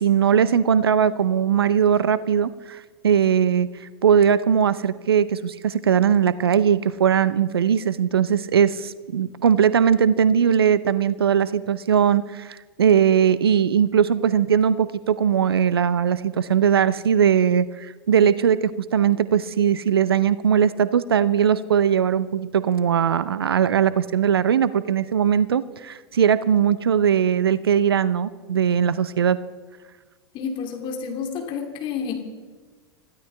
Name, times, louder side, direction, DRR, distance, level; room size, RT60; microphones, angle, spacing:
voice 1, 0.0-29.4, right 8 dB, 75° right, 16 dB, 0.6 m, -20 dB
voice 2, 30.3-32.1, left 6 dB, 40° left, 3 dB, 2.6 m, -29 dB
26.0 x 15.5 x 3.3 m, 1.4 s
figure-of-eight pair, 90°, 13 cm